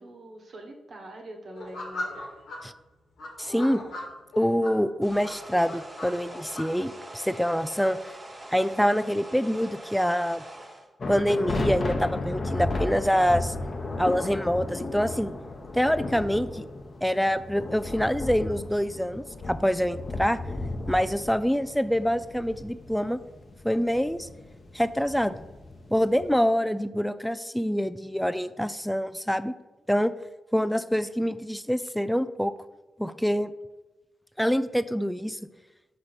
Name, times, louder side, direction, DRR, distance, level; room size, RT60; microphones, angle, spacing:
voice 1, 0.0-2.3, right 1 dB, 60° right, 1 dB, 1.3 m, -44 dB
sound 1, 1.5-2.6 3.2-4.7 5.2-6.6, left 2 dB, 80° left, 1.7 m, -37 dB
voice 2, 3.4-3.8 4.4-8.1 8.5-10.4 11.1-13.5 14.0-15.3 15.7-16.6 17.0-20.4 20.9-23.2 23.6-24.3 24.7-25.4 25.9-29.5 29.9-30.1 30.5-32.5 33.0-33.5 34.4-35.4, equal, 5° left, 13 dB, 0.4 m, -25 dB
sound 2, 5.0-10.9, right 1 dB, 30° right, 1.3 m, -44 dB
sound 3, 11.0-26.4, left 2 dB, 50° left, 0.8 m, -34 dB
5.7 x 4.0 x 5.0 m, 1.1 s
supercardioid pair, 50°, 0 cm